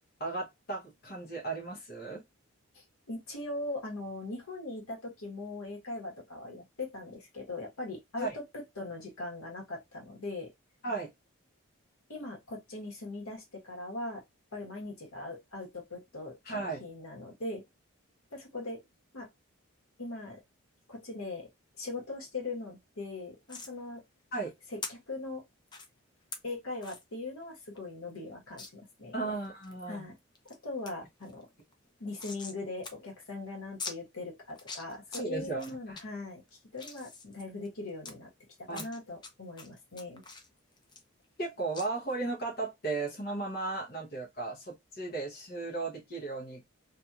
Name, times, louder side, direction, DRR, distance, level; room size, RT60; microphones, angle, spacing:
voice 1, 0.2-2.2 8.2-8.3 10.8-11.1 16.4-16.8 24.3-24.5 29.1-30.0 35.1-35.8 38.7-38.8 41.4-46.6, right 3 dB, 45° left, 0.8 m, -35 dB
voice 2, 2.7-10.5 12.1-14.2 14.5-17.6 18.3-18.8 19.1-19.3 20.0-20.4 20.9-21.5 21.8-24.0 24.7-25.4 26.4-29.1 29.9-30.1 30.6-31.5 32.0-38.3 38.7-40.2, left 2 dB, 75° left, 1.3 m, -40 dB
sound 1, 23.5-23.7 24.8-24.9 25.7-25.9 26.3-26.4 26.8-27.0 27.4-27.5 27.8-27.9 28.6-28.7 29.2-29.7 30.2-30.6 30.9-31.0 31.2-32.6 32.8-32.9 33.2-33.3 33.8-34.0 34.5-35.2 35.6-36.0 36.5-38.1 38.7-39.3 39.6-41.5 41.7-41.9, left 4 dB, 20° left, 0.4 m, -43 dB
2.8 x 2.5 x 2.3 m
head